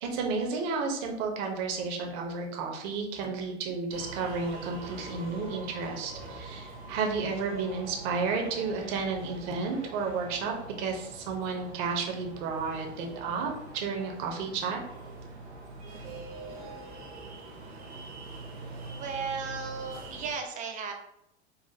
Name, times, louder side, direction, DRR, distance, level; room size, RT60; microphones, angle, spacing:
voice 1, 0.0-14.8, right 4 dB, 45° right, 2 dB, 0.8 m, -32 dB
sound 1, 3.9-20.3, right 2 dB, 70° right, 1.1 m, -44 dB
voice 2, 18.9-20.9, right 5 dB, 25° right, 4 dB, 0.5 m, -35 dB
4.0 x 2.5 x 2.6 m, 0.80 s
figure-of-eight pair, 95°, 34 cm